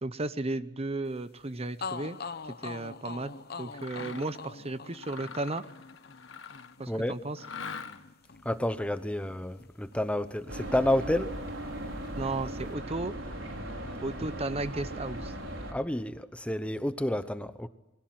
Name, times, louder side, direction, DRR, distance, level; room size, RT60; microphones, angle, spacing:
voice 1, 0.0-2.2 2.4-5.7 6.8-7.4 12.2-13.1 14.0-15.3, right 2 dB, 30° right, 0.9 m, -34 dB
sound 1, 1.4-1.5 1.8-9.7 9.9-11.1, left 4 dB, 55° left, 1.0 m, -44 dB
Mechanisms, 3.7-4.4 4.9-6.8 7.4-8.2, left 5 dB, 70° left, 1.6 m, -43 dB
voice 2, 8.4-11.3 15.7-17.7, left 1 dB, 5° left, 0.8 m, -30 dB
sound 2, 10.5-15.7, right 1 dB, 80° right, 5.2 m, -38 dB
28.0 x 22.0 x 7.8 m
head